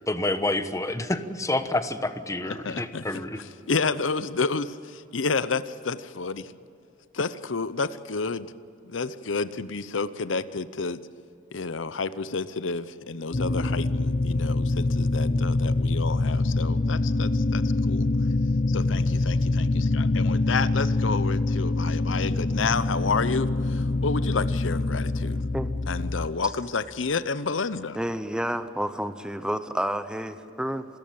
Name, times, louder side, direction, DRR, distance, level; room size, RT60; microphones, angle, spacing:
voice 1, 0.1-3.4, left 2 dB, 15° left, 9 dB, 1.2 m, -28 dB
voice 2, 2.5-3.0 3.7-6.5 7.1-8.5 8.8-11.0 11.5-18.1 18.7-25.4 25.9-28.0, left 4 dB, 80° left, 15 dB, 0.8 m, -30 dB
sound 1, 13.3-26.3, left 2 dB, 45° left, 0.8 m, -25 dB
voice 3, 27.9-30.8, equal, 5° right, 10 dB, 0.9 m, -30 dB
27.5 x 14.0 x 8.8 m, 2.7 s
head